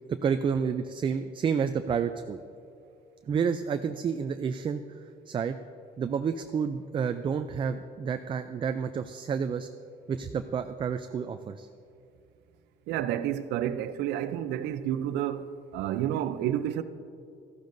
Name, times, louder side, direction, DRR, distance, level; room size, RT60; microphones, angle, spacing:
voice 1, 0.2-2.4 3.3-5.6 6.0-9.7 10.1-11.7, right 6 dB, 30° right, 0.3 m, -30 dB
voice 2, 12.9-16.8, right 11 dB, 85° right, 0.5 m, -30 dB
13.5 x 11.5 x 2.6 m
cardioid pair, 110°, 17 cm